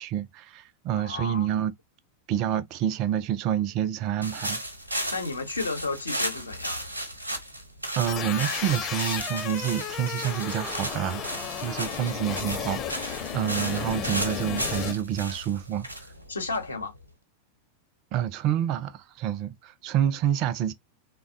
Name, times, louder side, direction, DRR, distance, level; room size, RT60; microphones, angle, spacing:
voice 1, 0.0-1.7 2.3-4.6 8.0-11.2 11.6-15.9 18.1-20.7, right 10 dB, 40° right, 0.4 m, -28 dB
voice 2, 0.9-1.5 5.1-6.8 16.3-16.9, left 3 dB, 75° left, 0.8 m, -32 dB
sound 1, 4.2-17.0, right 1 dB, 85° right, 0.8 m, -35 dB
sound 2, 8.1-14.9, left 8 dB, 30° left, 0.6 m, -33 dB
3.5 x 2.2 x 2.5 m
figure-of-eight pair, 90°, 0 cm